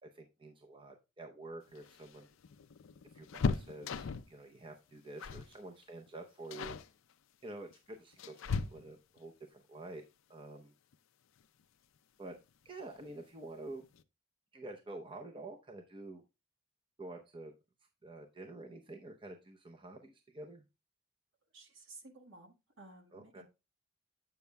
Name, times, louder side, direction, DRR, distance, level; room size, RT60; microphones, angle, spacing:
voice 1, 0.0-2.3 3.1-6.8 7.4-10.0 10.3-10.7 12.2-12.4 12.6-13.8 14.5-16.2 17.0-17.5 18.0-20.6 23.1-23.4, right 2 dB, 25° right, 0.7 m, -48 dB
sound 1, 1.7-4.4 5.2-5.5 5.8-6.1 6.5-6.9 7.7-9.2 10.9-11.0 11.4-11.5 12.7-13.1 13.4-13.5 13.8-14.0, left 5 dB, 65° left, 0.5 m, -38 dB
voice 2, 21.5-23.4, right 2 dB, 65° right, 1.5 m, -55 dB
8.1 x 6.9 x 2.2 m
head